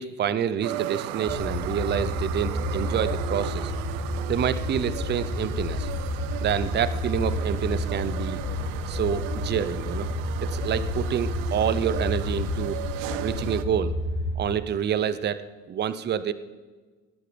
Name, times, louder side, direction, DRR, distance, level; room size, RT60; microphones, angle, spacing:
voice 1, 0.0-3.7 4.3-5.9 6.4-8.4 8.9-10.1 10.4-12.8 13.2-14.0 14.4-15.4 15.7-16.3, right 8 dB, 30° right, 14 dB, 0.6 m, -27 dB
sound 1, 0.6-13.6, right 12 dB, 85° right, 0.8 m, -36 dB
sound 2, 1.3-14.4, left 1 dB, 30° left, 3.4 m, -30 dB
19.5 x 8.7 x 5.1 m, 1.3 s
supercardioid pair, 110°, 36 cm